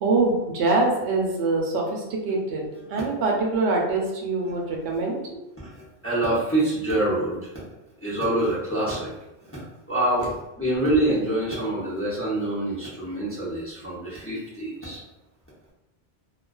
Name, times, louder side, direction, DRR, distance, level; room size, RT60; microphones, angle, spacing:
voice 1, 0.0-5.4, right 3 dB, 85° right, -1 dB, 0.9 m, -24 dB
voice 2, 5.6-7.7 8.0-9.1 9.4-10.3 10.6-15.0, right 1 dB, 15° left, -9 dB, 0.6 m, -26 dB
2.3 x 2.3 x 2.2 m, 0.95 s
omnidirectional pair, 1.1 m